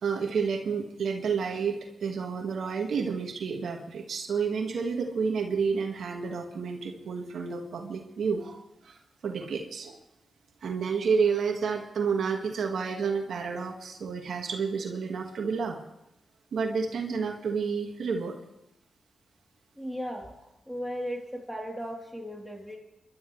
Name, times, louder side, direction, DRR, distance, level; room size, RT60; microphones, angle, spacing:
voice 1, 0.0-10.0 10.6-15.8 16.5-18.4, right 5 dB, 75° right, 3 dB, 1.8 m, -30 dB
voice 2, 19.8-22.8, equal, ahead, 0 dB, 3.5 m, -36 dB
29.0 x 12.0 x 3.3 m, 0.84 s
supercardioid pair, 45°, 0 cm